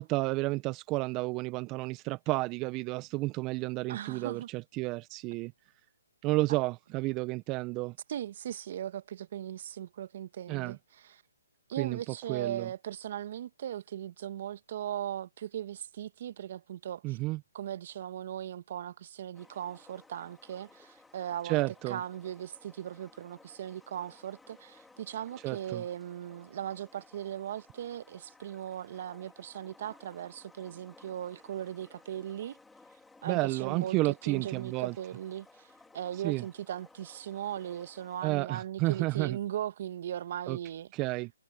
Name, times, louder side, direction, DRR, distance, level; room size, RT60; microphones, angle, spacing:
voice 1, 0.0-5.5 6.2-7.9 10.5-10.8 11.8-12.7 17.0-17.4 21.4-22.0 25.4-25.8 33.2-35.0 36.2-36.4 38.2-39.4 40.5-40.6 40.9-41.3, right 21 dB, 25° right, 0.8 m, -31 dB
voice 2, 3.9-4.5 8.1-10.8 11.7-17.2 17.5-21.6 21.9-32.6 33.2-40.9, right 10 dB, 50° right, 1.5 m, -38 dB
sound 1, 19.3-38.3, left 3 dB, 5° left, 3.3 m, -59 dB
figure-of-eight pair, 140°, 0 cm